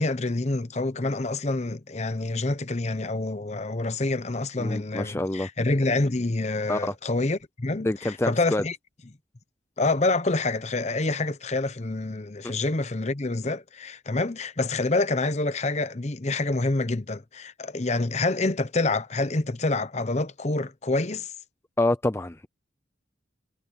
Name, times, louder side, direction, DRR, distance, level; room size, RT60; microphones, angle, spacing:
voice 1, 0.0-8.8 9.8-21.3, left 2 dB, 35° left, 0.8 m, -27 dB
voice 2, 4.6-5.5 6.7-6.9 7.8-8.6 12.4-12.5 21.8-22.5, left 1 dB, 15° left, 0.5 m, -27 dB
head